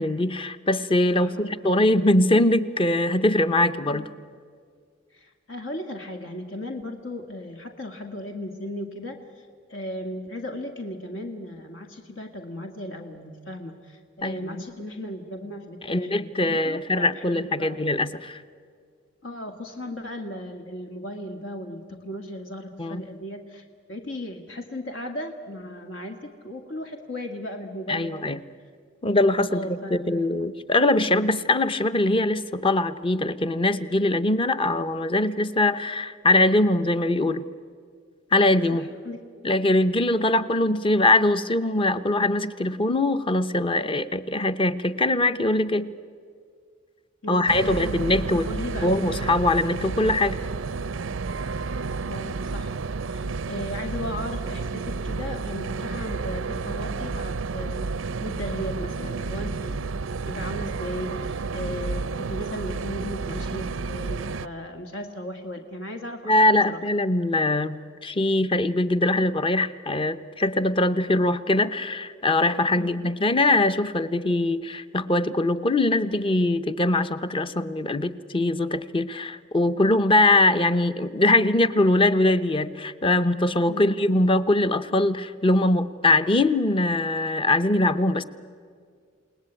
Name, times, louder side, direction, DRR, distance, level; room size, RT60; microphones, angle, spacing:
voice 1, 0.0-4.1 14.2-14.6 15.8-18.4 22.8-23.0 27.9-28.4 29.0-37.4 38.3-38.9 39.4-45.9 47.3-48.5 48.8-50.4 66.2-88.2, left 2 dB, 25° left, 12 dB, 0.8 m, -22 dB
voice 2, 1.2-1.5 3.9-4.0 5.1-17.8 19.2-28.3 29.5-30.0 38.7-39.2 47.2-48.0 48.3-49.4 52.1-52.8 53.1-59.8 60.3-66.3 66.7-66.8 72.8-73.1 83.7-83.9, left 1 dB, 75° left, 4 dB, 1.8 m, -36 dB
sound 1, 47.5-64.5, right 4 dB, 85° right, 0.6 m, -31 dB
29.0 x 19.0 x 9.0 m, 2.1 s
head